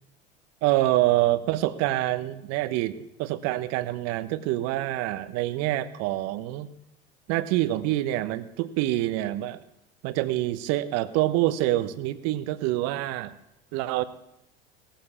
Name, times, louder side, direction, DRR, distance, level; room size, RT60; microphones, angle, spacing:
voice 1, 0.6-6.7 7.3-9.6 10.0-13.3 13.7-14.0, right 15 dB, 55° right, 13 dB, 1.1 m, -26 dB
18.0 x 7.4 x 7.2 m, 0.88 s
hypercardioid pair, 75°, 30 cm